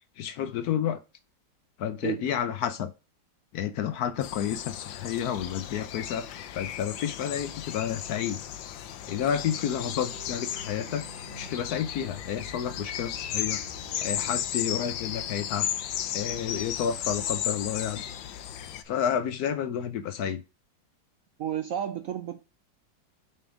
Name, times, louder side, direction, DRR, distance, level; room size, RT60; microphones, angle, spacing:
voice 1, 0.2-1.0 1.8-2.9 3.5-6.3 6.5-8.4 9.1-11.0 11.4-13.6 14.0-15.7 16.1-18.0 18.8-20.4, left 9 dB, 70° left, 1.0 m, -30 dB
sound 1, 4.2-18.8, left 10 dB, 85° left, 1.4 m, -35 dB
sound 2, 9.1-14.3, right 2 dB, 30° right, 1.3 m, -47 dB
voice 2, 21.4-22.4, right 10 dB, 70° right, 0.8 m, -31 dB
5.5 x 4.4 x 5.0 m
omnidirectional pair, 2.0 m